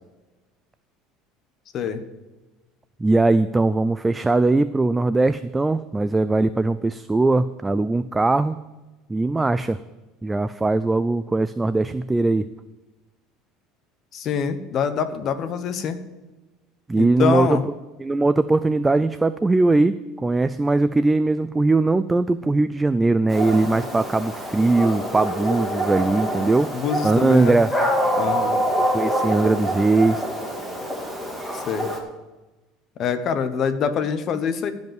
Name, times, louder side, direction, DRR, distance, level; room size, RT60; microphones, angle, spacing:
voice 1, 3.0-8.6 9.1-9.8 10.2-12.5 16.9-17.5 18.0-26.7 27.0-27.7 28.9-30.2, right 2 dB, 10° right, 12 dB, 0.3 m, -20 dB
voice 2, 14.1-16.0 17.0-17.6 26.7-27.6 28.2-28.6 31.5-31.9 33.0-34.7, left 7 dB, 45° left, 10 dB, 1.1 m, -25 dB
Dog, 23.3-32.0, equal, 5° left, 2.2 m, -26 dB
15.5 x 5.4 x 7.8 m, 1.1 s
cardioid pair, 130°, 0 cm